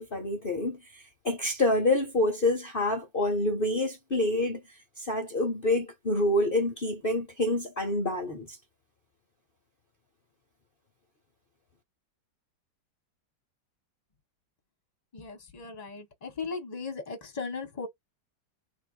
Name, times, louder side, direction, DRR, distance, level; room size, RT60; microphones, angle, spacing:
voice 1, 0.0-8.6, left 1 dB, 40° left, 0.8 m, -27 dB
voice 2, 15.1-17.9, left 4 dB, 25° left, 1.2 m, -37 dB
3.8 x 2.7 x 2.4 m
omnidirectional pair, 2.0 m